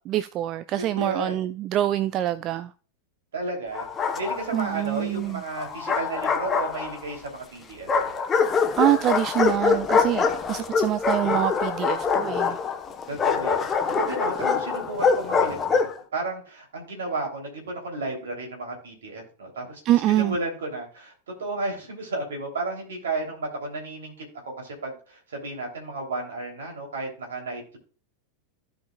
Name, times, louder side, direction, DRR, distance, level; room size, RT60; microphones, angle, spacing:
voice 1, 0.1-2.7 4.5-5.4 8.8-12.6 19.9-20.4, right 13 dB, 35° right, 0.3 m, -25 dB
voice 2, 0.8-1.4 3.3-3.8 4.1-8.1 10.5-10.8 13.1-19.8 20.1-21.1 21.4-24.1 24.6-27.8, right 2 dB, 65° right, 3.1 m, -33 dB
Bark, 3.7-4.7 5.6-7.2 7.9-16.0, left 5 dB, 20° left, 0.9 m, -24 dB
15.5 x 5.3 x 2.3 m
figure-of-eight pair, 90°, 0 cm